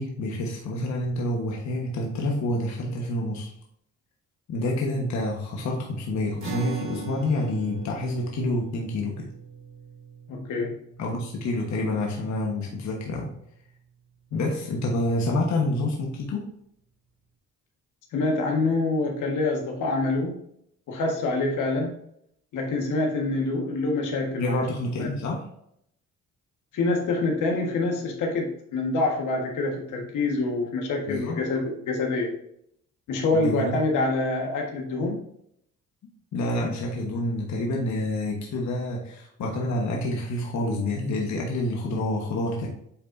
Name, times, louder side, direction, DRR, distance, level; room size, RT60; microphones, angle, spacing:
voice 1, 0.0-3.5 4.5-9.3 11.0-13.3 14.3-16.5 24.3-25.4 31.1-31.4 33.3-33.8 36.3-42.7, left 1 dB, 65° left, -1 dB, 1.3 m, -28 dB
sound 1, 6.4-13.0, right 4 dB, 40° right, 2.6 m, -40 dB
voice 2, 10.3-10.7 18.1-20.4 20.9-21.9 22.5-24.7 25.0-25.1 26.7-32.3 33.1-35.2, left 2 dB, 80° left, 1 dB, 1.5 m, -26 dB
8.3 x 4.4 x 2.6 m, 0.71 s
cardioid pair, 90°, 30 cm